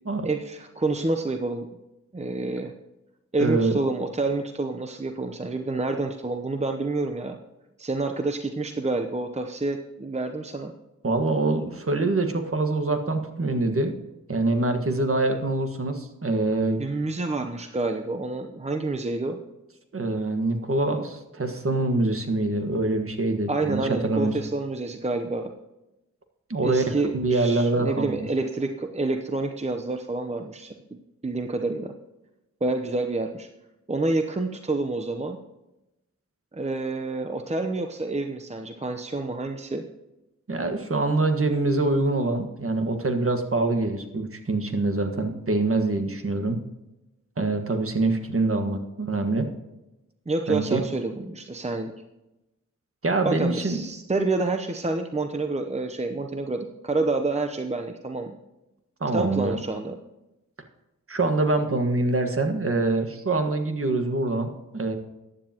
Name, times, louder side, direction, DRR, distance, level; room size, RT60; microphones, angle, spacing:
voice 1, 0.2-1.8 2.1-2.7 3.3-7.4 7.8-10.7 16.8-19.4 23.5-25.5 26.6-31.9 32.6-33.5 33.9-35.4 36.5-39.8 50.3-51.9 53.2-58.3 59.1-60.0, right 2 dB, 20° right, 5 dB, 0.8 m, -28 dB
voice 2, 3.4-3.8 11.0-13.9 14.3-16.8 19.9-24.3 26.5-28.2 40.5-46.6 47.4-49.5 50.5-50.8 53.0-53.8 59.0-59.6 61.1-65.0, right 2 dB, 45° right, 6 dB, 1.6 m, -25 dB
14.5 x 10.0 x 3.0 m, 0.96 s
cardioid pair, 50°, 30 cm